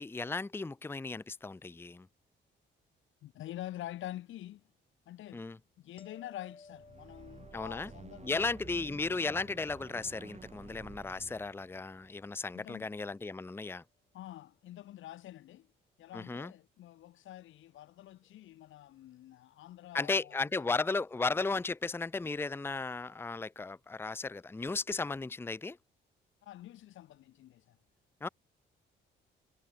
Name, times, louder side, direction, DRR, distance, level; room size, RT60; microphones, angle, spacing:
voice 1, 0.0-2.1 5.3-5.6 7.5-7.9 8.2-13.8 16.1-16.5 19.9-25.8 28.2-28.3, left 3 dB, 10° left, 0.6 m, -35 dB
voice 2, 3.2-4.6 5.1-5.5 5.8-8.5 12.5-12.9 14.1-15.7 16.0-20.7 26.4-27.8, left 13 dB, 75° left, 1.3 m, -47 dB
sound 1, 6.0-13.0 18.2-18.4, left 4 dB, 25° left, 6.5 m, -61 dB
sound 2, 6.7-13.0, right 5 dB, 35° right, 5.8 m, -52 dB
cardioid pair, 90°, 20 cm